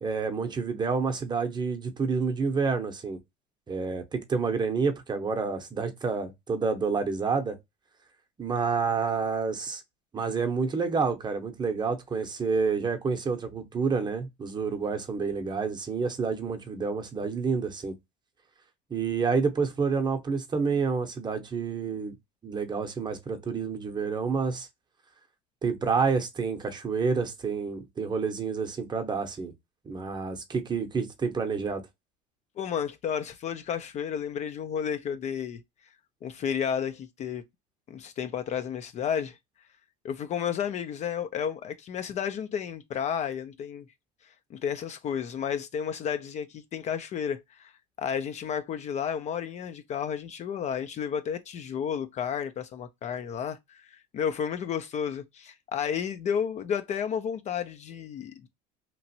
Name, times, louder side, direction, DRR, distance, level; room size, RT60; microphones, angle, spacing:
voice 1, 0.0-3.2 3.7-7.6 8.4-9.8 10.1-18.0 18.9-22.1 22.4-24.7 25.6-29.5 29.9-31.8, right 5 dB, 20° right, 0.8 m, -29 dB
voice 2, 32.6-35.6 36.2-37.4 37.9-39.4 40.0-43.9 44.5-47.7 48.0-58.5, left 8 dB, 35° left, 0.4 m, -32 dB
2.9 x 2.5 x 2.7 m
supercardioid pair, 100°, 19 cm